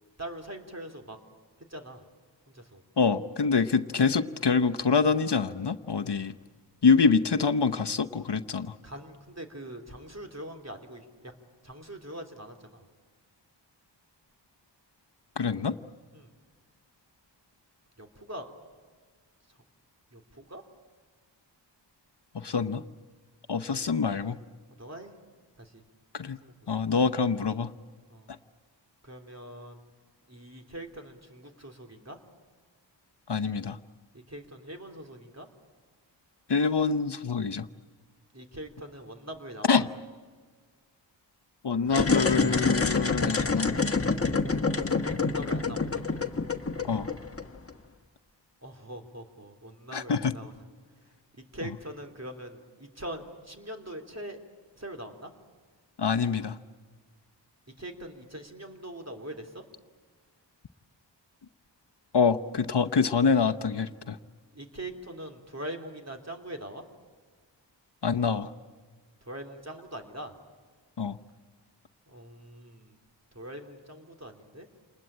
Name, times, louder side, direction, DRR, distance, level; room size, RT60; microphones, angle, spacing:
voice 1, 0.2-1.2 1.7-2.0 2.5-2.8 3.9-4.0 8.8-11.3 11.6-12.8 16.1-16.4 18.0-18.5 20.1-20.6 24.8-25.1 25.6-25.8 26.4-26.7 28.1-28.3 29.0-29.8 30.3-32.2 34.1-35.5 38.3-39.9 45.2-46.2 48.6-50.5 51.3-54.4 54.8-55.3 57.8-59.6 64.5-66.8 69.2-70.3 72.1-73.0 73.3-74.7, right 1 dB, 35° right, 3 dB, 3.3 m, -42 dB
voice 2, 3.0-6.3 6.8-8.7 15.4-15.8 22.3-22.8 23.5-24.4 26.1-26.4 26.7-27.7 33.3-33.8 36.5-37.7 39.7-39.9 41.6-44.0 46.9-47.1 49.9-50.3 56.0-56.6 62.1-64.2 68.0-68.5 71.0-71.2, left 5 dB, 65° left, 8 dB, 0.9 m, -25 dB
sound 1, 41.9-47.7, left 4 dB, 30° left, 1.4 m, -27 dB
28.5 x 20.5 x 8.8 m, 1.5 s
wide cardioid pair, 45°, 45 cm